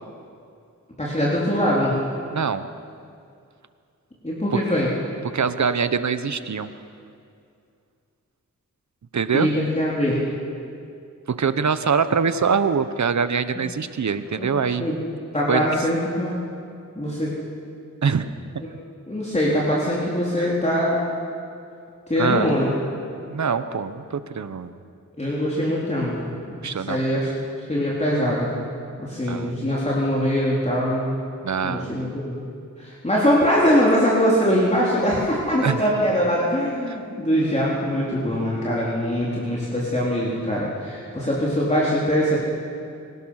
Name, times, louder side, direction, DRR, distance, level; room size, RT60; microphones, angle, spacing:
voice 1, 1.0-2.0 4.2-4.9 9.3-10.2 14.4-14.5 14.8-15.0 15.3-16.4 17.0-17.3 19.1-21.0 22.1-22.8 25.2-26.2 26.6-27.3 27.7-28.5 29.0-31.2 31.6-32.4 32.8-42.4, equal, 20° left, -6 dB, 3.9 m, -22 dB
voice 2, 2.3-2.6 5.3-6.7 9.1-9.5 11.3-14.9 15.5-15.7 18.0-18.3 20.4-20.5 22.2-22.5 23.3-24.7 26.6-27.0 29.3-29.6 31.4-31.9 35.6-35.8, right 6 dB, 60° right, 11 dB, 1.1 m, -23 dB
24.0 x 18.0 x 6.5 m, 2.4 s
wide cardioid pair, 70°, 32 cm